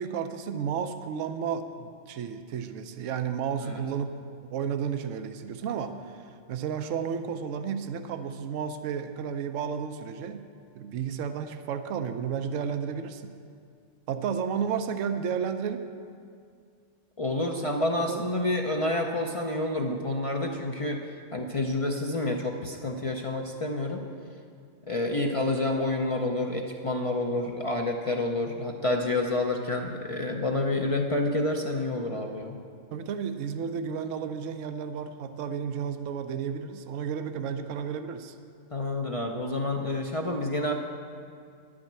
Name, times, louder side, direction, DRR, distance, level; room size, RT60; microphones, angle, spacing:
voice 1, 0.0-10.4 10.7-13.3 14.1-15.8 18.0-18.3 32.9-38.3, right 7 dB, 80° right, 9 dB, 1.0 m, -32 dB
voice 2, 17.2-24.1 24.9-32.6 38.7-40.7, left 2 dB, 40° left, 2 dB, 0.5 m, -29 dB
10.5 x 6.2 x 8.6 m, 2.2 s
omnidirectional pair, 1.3 m